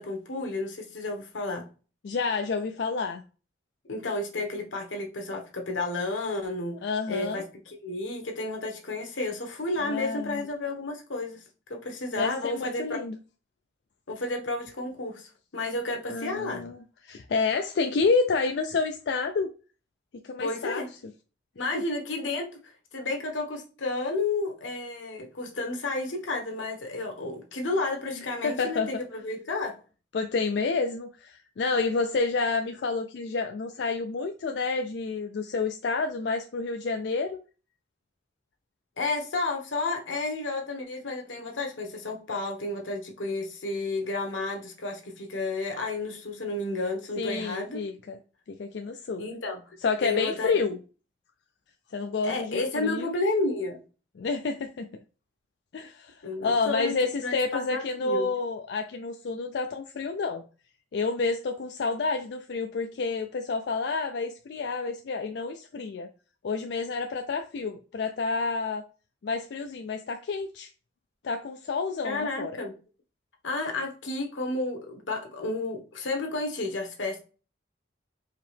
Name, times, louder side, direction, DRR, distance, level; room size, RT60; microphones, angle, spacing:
voice 1, 0.0-1.6 3.9-6.7 7.1-11.4 11.7-13.0 14.1-16.6 20.4-20.9 21.5-22.5 22.9-29.7 39.0-47.8 49.2-49.6 50.0-50.5 52.2-53.8 56.2-56.9 57.2-58.3 72.0-72.7 73.4-77.2, left 2 dB, 85° left, 1.2 m, -31 dB
voice 2, 2.0-3.2 6.8-7.4 9.8-10.4 12.2-13.2 16.1-19.5 20.2-20.8 21.7-21.8 28.4-28.9 30.1-37.4 47.2-48.2 48.5-49.2 49.8-50.8 51.9-53.1 54.2-54.9 55.7-56.2 56.4-60.4 60.9-66.1 66.4-68.8 69.2-70.7 71.2-72.5, left 4 dB, 65° left, 0.4 m, -29 dB
4.7 x 2.8 x 3.3 m
head